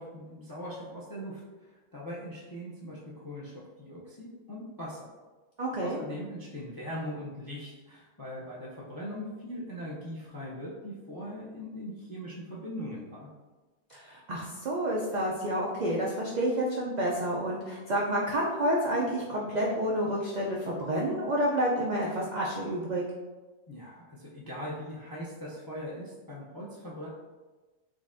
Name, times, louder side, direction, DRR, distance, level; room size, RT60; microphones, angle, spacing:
voice 1, 0.0-5.1 5.8-13.3 23.7-27.1, equal, 35° left, -6 dB, 0.3 m, -40 dB
voice 2, 5.6-6.0 13.9-23.0, right 1 dB, 75° right, -4 dB, 0.4 m, -29 dB
3.9 x 3.2 x 2.5 m, 1.2 s
omnidirectional pair, 1.4 m